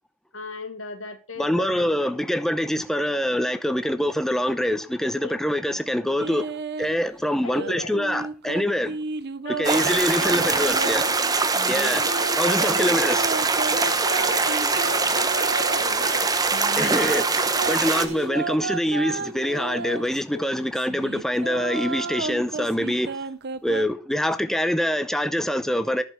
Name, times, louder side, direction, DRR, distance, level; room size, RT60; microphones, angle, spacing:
voice 1, 0.3-2.1 5.2-5.4 7.4-7.9 9.4-13.1 13.6-16.3 20.3-20.5, left 3 dB, 85° left, 1.9 m, -36 dB
voice 2, 1.4-6.5 6.8-9.0 9.6-11.0 11.7-12.0 12.4-13.4 16.8-23.2 23.6-26.0, equal, ahead, 0.6 m, -25 dB
sound 1, 6.2-7.0 7.5-11.0 11.5-15.9 16.4-20.2 20.7-23.8, right 4 dB, 55° right, 0.8 m, -32 dB
sound 2, 9.6-18.1, right 4 dB, 20° right, 1.0 m, -23 dB
Domestic sounds home sounds, 12.1-18.3, right 4 dB, 35° right, 3.3 m, -46 dB
11.0 x 6.9 x 5.7 m
head